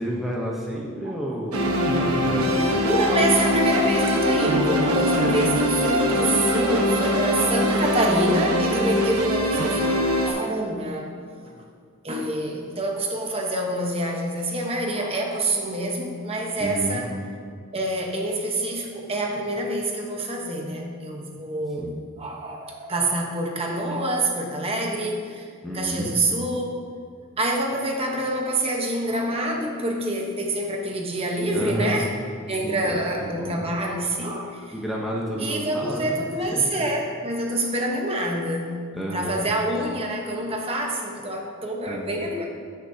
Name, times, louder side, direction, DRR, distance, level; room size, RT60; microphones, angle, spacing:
voice 1, 0.0-2.9 9.1-9.4 16.5-17.0 21.8-22.0 25.6-26.1 31.5-32.1 32.6-33.6 34.7-36.9 38.9-39.4 41.9-42.1, equal, ahead, -5 dB, 0.8 m, -31 dB
sound 1, 1.5-10.3, equal, 85° right, 1.1 m, -22 dB
voice 2, 2.9-11.1 11.4-11.6 12.0-17.1 17.7-21.9 22.2-26.7 27.4-32.1 32.5-34.7 35.4-38.7 39.1-42.5, right 1 dB, 25° right, 0 dB, 1.0 m, -26 dB
14.5 x 6.4 x 2.8 m, 2.1 s
head